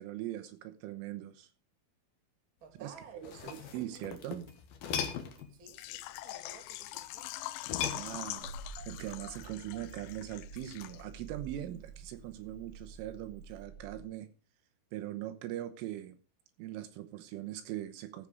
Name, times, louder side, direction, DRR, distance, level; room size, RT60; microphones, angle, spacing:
voice 1, 0.0-1.5 2.8-4.5 7.9-8.6 8.9-14.3 14.9-16.2 16.6-18.3, right 13 dB, 85° right, 3.4 m, -41 dB
voice 2, 2.6-4.1 5.5-7.3, right 5 dB, 30° right, 2.7 m, -55 dB
sound 1, 3.1-5.5 7.6-8.6 10.7-11.0, left 7 dB, 60° left, 2.7 m, -39 dB
Car / Engine starting, 3.3-3.5 3.8-4.6 4.9-6.0 6.3-14.0, right 4 dB, 60° right, 3.3 m, -50 dB
Water / Liquid, 5.7-11.3 11.5-11.6 12.1-12.2, left 17 dB, 80° left, 2.9 m, -43 dB
15.0 x 6.5 x 4.8 m
omnidirectional pair, 5.9 m